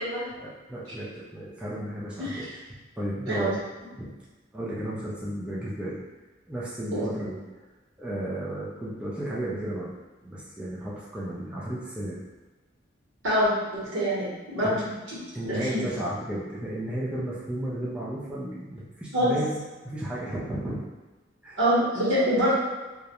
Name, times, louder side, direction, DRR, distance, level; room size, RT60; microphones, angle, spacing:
voice 1, 0.3-3.6 3.9-4.1 4.5-6.0 6.5-7.4 8.0-9.9 10.2-12.2 14.6-14.8 15.3-20.9 21.4-21.6, right 1 dB, 5° right, -7 dB, 0.4 m, -34 dB
voice 2, 13.2-14.8 15.1-15.2 15.4-15.8 19.1-19.4 21.6-22.5, equal, 85° right, -8 dB, 1.0 m, -25 dB
2.4 x 2.0 x 2.8 m, 1.2 s
head